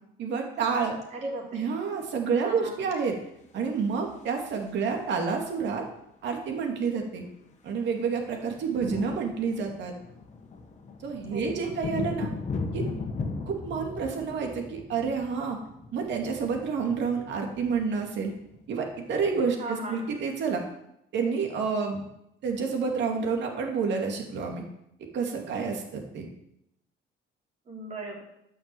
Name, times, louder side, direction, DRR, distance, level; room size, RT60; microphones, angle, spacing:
voice 1, 0.2-1.0 1.5-3.1 3.5-5.8 6.2-7.2 7.6-9.9 11.0-12.3 12.7-12.9 13.5-15.6 15.9-18.3 18.7-20.6 21.1-22.0 22.4-24.6 25.1-26.3, right 5 dB, 60° right, 2 dB, 2.5 m, -29 dB
voice 2, 1.1-1.7 2.4-2.8 11.3-11.8 19.6-20.1 27.7-28.2, right 2 dB, 35° right, -1 dB, 3.7 m, -37 dB
sound 1, 3.6-5.2 6.5-6.6 6.8-7.0 7.3-19.4, left 4 dB, 35° left, 1.6 m, -38 dB
12.5 x 6.5 x 7.8 m, 0.80 s
cardioid pair, 155°, 21 cm